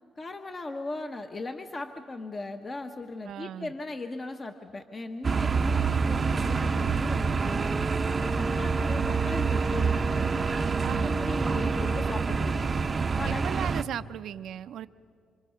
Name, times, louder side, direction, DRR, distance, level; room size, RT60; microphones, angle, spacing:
voice 1, 0.2-7.6 8.3-10.4 10.9-12.7 13.1-13.5, left 2 dB, 30° left, 5 dB, 1.0 m, -38 dB
voice 2, 3.2-3.7 10.8-11.4 13.2-14.9, right 10 dB, 75° right, 13 dB, 0.6 m, -37 dB
sound 1, 5.2-13.8, right 5 dB, 35° right, 0.7 m, -27 dB
sound 2, 7.4-12.2, right 1 dB, 5° right, 0.9 m, -37 dB
28.0 x 25.5 x 5.7 m, 2.2 s
cardioid pair, 90°, 0 cm